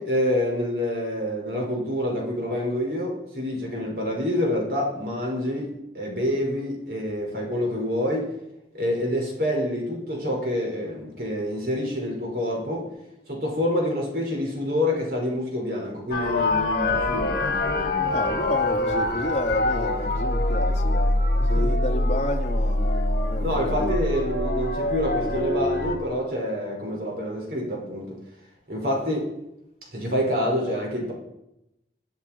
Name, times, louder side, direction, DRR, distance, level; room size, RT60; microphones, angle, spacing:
voice 1, 0.0-5.7 5.9-8.3 8.7-12.9 13.3-18.2 21.4-21.8 23.4-28.2 28.7-29.3 29.9-31.1, left 1 dB, 60° right, 5.6 m, -27 dB
sound 1, 16.1-26.0, left 2 dB, 55° left, 2.7 m, -24 dB
voice 2, 18.0-23.9, left 1 dB, 35° left, 2.5 m, -31 dB
27.5 x 9.6 x 4.6 m
head